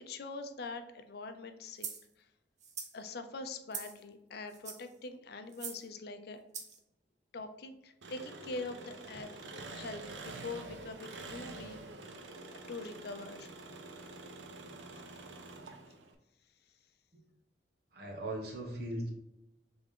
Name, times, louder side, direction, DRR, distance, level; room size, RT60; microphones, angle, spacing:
voice 1, 0.0-1.9 2.9-6.4 7.3-11.8 12.7-13.5 14.9-15.0, left 3 dB, 60° left, 8 dB, 0.5 m, -44 dB
sound 1, 1.8-2.0 2.6-2.9 3.7-4.0 4.5-4.9 5.5-5.8 6.5-6.8, right 6 dB, 40° right, 0.6 m, -42 dB
Engine, 8.0-16.1, right 2 dB, 85° right, 0.6 m, -47 dB
voice 2, 17.9-19.1, right 1 dB, 60° right, 1 dB, 1.0 m, -39 dB
3.6 x 3.4 x 3.6 m, 0.89 s
head